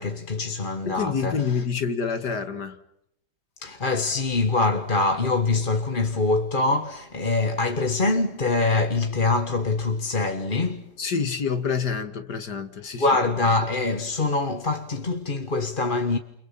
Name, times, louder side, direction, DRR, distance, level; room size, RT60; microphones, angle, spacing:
voice 1, 0.0-1.6 3.6-10.9 13.0-16.2, left 3 dB, 30° left, 1.5 m, -24 dB
voice 2, 0.8-2.8 11.0-13.1, left 6 dB, 75° left, 2.4 m, -27 dB
30.0 x 29.5 x 5.8 m
omnidirectional pair, 1.8 m